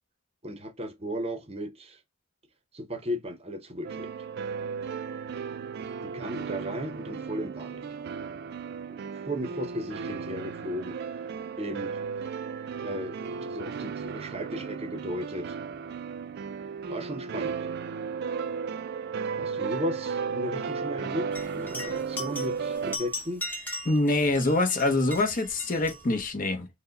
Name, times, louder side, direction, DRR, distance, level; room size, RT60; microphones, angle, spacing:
voice 1, 0.4-2.0 2.7-4.1 6.0-7.8 8.9-11.0 11.6-12.0 12.8-15.6 16.9-17.7 19.4-23.4, equal, 30° right, 0.7 m, -35 dB
sound 1, 3.8-23.0, right 6 dB, 50° right, 0.3 m, -35 dB
horse's bell, 21.3-26.3, left 1 dB, 10° left, 0.8 m, -39 dB
voice 2, 23.8-26.7, left 2 dB, 40° left, 0.7 m, -25 dB
4.6 x 2.1 x 3.9 m
head